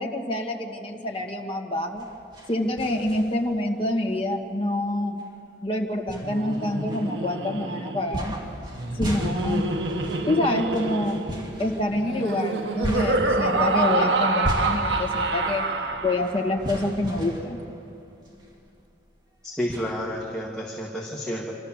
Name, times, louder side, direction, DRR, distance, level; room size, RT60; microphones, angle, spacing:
voice 1, 0.0-2.0 2.5-5.2 5.6-8.3 8.9-9.6 10.3-11.2 11.6-15.6 16.0-17.6, left 1 dB, 30° left, 0 dB, 2.0 m, -26 dB
sound 1, 1.9-3.6 4.1-4.2 5.2-5.3 6.1-7.5 8.1-18.5 18.8-18.9 19.7-20.8, equal, 25° right, 2.2 m, -36 dB
Laughter, 6.1-16.6, right 2 dB, 70° right, 1.2 m, -27 dB
voice 2, 19.4-21.6, equal, 5° left, -5 dB, 1.9 m, -30 dB
27.0 x 13.5 x 7.4 m, 2.6 s
head